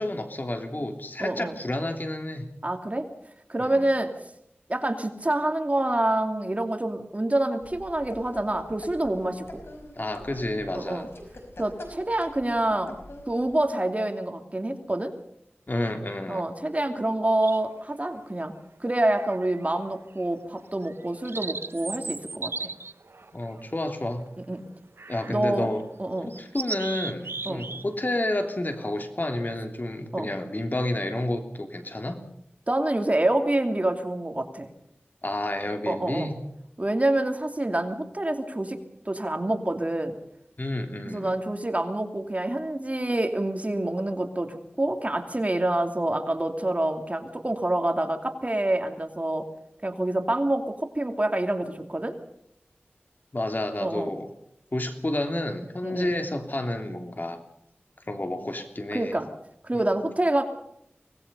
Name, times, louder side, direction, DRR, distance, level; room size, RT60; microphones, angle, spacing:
voice 1, 0.0-2.5 3.6-3.9 9.9-11.1 15.7-16.4 23.3-24.2 25.1-25.8 26.4-32.2 35.2-36.4 40.6-41.4 53.3-54.3 54.7-57.4 58.1-59.2 59.7-59.8, left 1 dB, 45° left, 5 dB, 3.2 m, -30 dB
voice 2, 1.2-1.6 2.6-3.1 3.5-4.1 4.7-9.6 10.7-11.1 11.6-13.0 13.3-15.1 16.3-18.5 18.8-22.7 24.5-24.6 25.3-25.7 26.0-26.3 27.5-27.7 30.1-30.3 32.7-34.7 35.9-36.3 36.8-38.8 39.1-40.1 41.1-49.4 49.8-52.1 53.8-54.1 55.8-56.1 58.9-59.3 59.6-60.4, right 1 dB, 35° right, 5 dB, 2.7 m, -27 dB
sound 1, 7.6-13.5, left 1 dB, 75° left, 5.3 m, -45 dB
sound 2, 17.4-17.9 19.0-19.7 20.1-20.3 20.8-24.3 25.0-25.4 25.8-25.9 26.3-27.8 28.1-28.4, right 3 dB, 75° right, 0.8 m, -37 dB
24.5 x 19.5 x 5.5 m, 0.74 s
wide cardioid pair, 45°, 4 cm